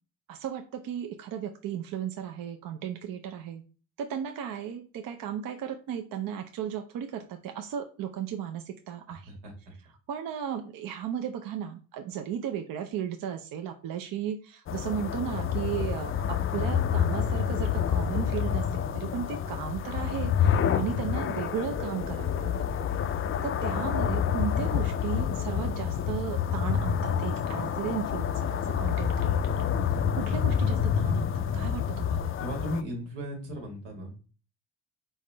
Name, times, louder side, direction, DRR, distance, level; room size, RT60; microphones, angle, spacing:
voice 1, 0.3-3.6 4.0-9.3 10.1-23.0 23.4-29.6 30.1-32.3, right 9 dB, 55° right, 6 dB, 0.6 m, -35 dB
sound 1, 14.7-32.8, left 8 dB, 35° left, 0.4 m, -28 dB
voice 2, 32.4-34.2, equal, 80° right, 2 dB, 1.7 m, -35 dB
4.1 x 3.5 x 3.3 m, 0.37 s
supercardioid pair, 80°, 42 cm